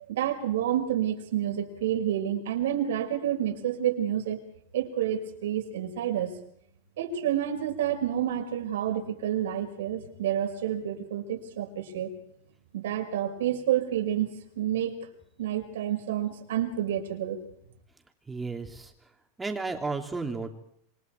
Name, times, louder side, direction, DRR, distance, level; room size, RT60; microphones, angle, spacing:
voice 1, 0.0-4.4 4.7-6.3 7.0-12.1 12.7-14.3 14.6-15.0 15.4-17.4, right 11 dB, 85° right, 5 dB, 5.6 m, -29 dB
voice 2, 18.3-18.9 19.4-20.5, right 3 dB, 10° right, 4 dB, 3.1 m, -33 dB
27.0 x 25.0 x 4.7 m, 0.70 s
supercardioid pair, 150°, 0 cm